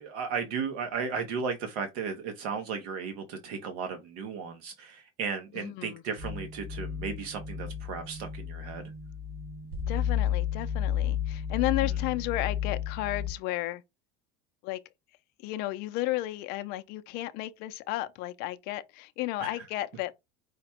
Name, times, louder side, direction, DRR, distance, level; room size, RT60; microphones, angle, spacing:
voice 1, 0.0-8.8 19.4-19.5, right 5 dB, 70° right, 0.9 m, -35 dB
voice 2, 5.6-6.0 9.9-13.8 14.6-14.8 15.4-20.1, left 16 dB, 50° left, 0.5 m, -33 dB
sound 1, 6.2-13.3, left 9 dB, 50° right, 2.6 m, -32 dB
5.0 x 2.2 x 4.3 m
cardioid pair, 160°, 21 cm